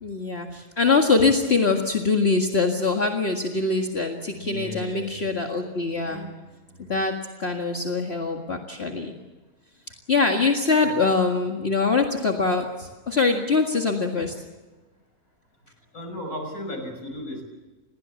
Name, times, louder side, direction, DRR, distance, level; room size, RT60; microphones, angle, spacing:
voice 1, 0.0-6.2 6.9-9.2 10.1-14.3, left 4 dB, 40° left, 2 dB, 2.1 m, -23 dB
voice 2, 4.4-5.3 5.9-6.4 6.7-6.8 10.8-11.0 15.9-17.4, equal, 65° left, 5 dB, 6.6 m, -36 dB
28.0 x 20.5 x 7.2 m, 1.2 s
omnidirectional pair, 1.6 m